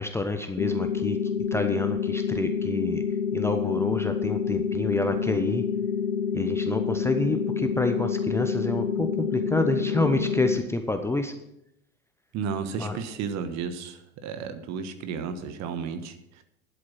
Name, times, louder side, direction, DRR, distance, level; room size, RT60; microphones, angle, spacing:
voice 1, 0.0-3.0 3.3-5.6 6.3-11.3 12.8-13.0, left 2 dB, 5° left, 6 dB, 0.8 m, -28 dB
sound 1, 0.6-10.6, left 7 dB, 75° left, 1.0 m, -28 dB
voice 2, 12.3-16.4, right 6 dB, 40° right, 9 dB, 1.3 m, -33 dB
11.5 x 7.9 x 5.8 m, 0.80 s
figure-of-eight pair, 85°, 41 cm